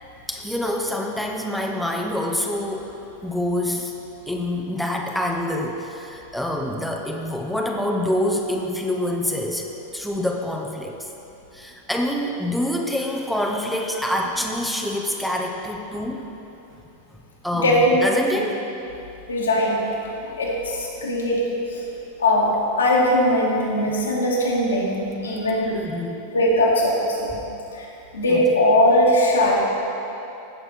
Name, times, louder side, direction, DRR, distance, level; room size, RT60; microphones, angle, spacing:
voice 1, 0.3-3.9 4.3-9.7 9.9-11.1 11.5-16.2 17.4-18.7 25.7-26.2 28.3-28.5, left 1 dB, ahead, 0 dB, 0.8 m, -26 dB
voice 2, 17.5-18.0 19.3-19.8 20.2-21.4 21.7-21.8 22.2-25.7 26.3-27.0 27.3-27.4 27.8-27.9 28.1-29.7, left 1 dB, 70° left, -4 dB, 2.1 m, -20 dB
15.5 x 6.7 x 4.5 m, 2.9 s
figure-of-eight pair, 90°, 0 cm